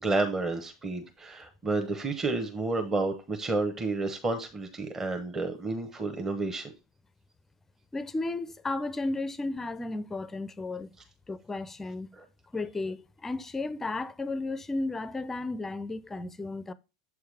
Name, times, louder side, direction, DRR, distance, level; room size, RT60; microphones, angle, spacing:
voice 1, 0.0-6.7 12.2-12.3, right 3 dB, 20° right, 1.0 m, -30 dB
voice 2, 7.9-10.9 11.3-12.2 12.5-16.7, left 2 dB, 15° left, 0.5 m, -34 dB
7.4 x 4.7 x 3.4 m
figure-of-eight pair, 90°, 2 cm